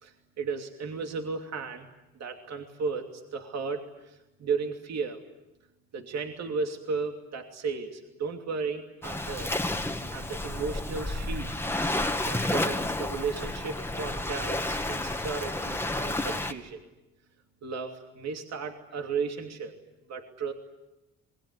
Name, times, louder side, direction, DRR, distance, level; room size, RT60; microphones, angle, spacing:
voice 1, 0.0-5.2 5.9-9.5 10.1-11.5 12.2-16.8 17.6-19.7 20.1-20.5, right 5 dB, 60° right, 4 dB, 2.9 m, -34 dB
Waves surf, 9.0-16.5, left 1 dB, 10° left, 1.9 m, -31 dB
27.0 x 21.0 x 9.9 m, 0.99 s
cardioid pair, 90°, 30 cm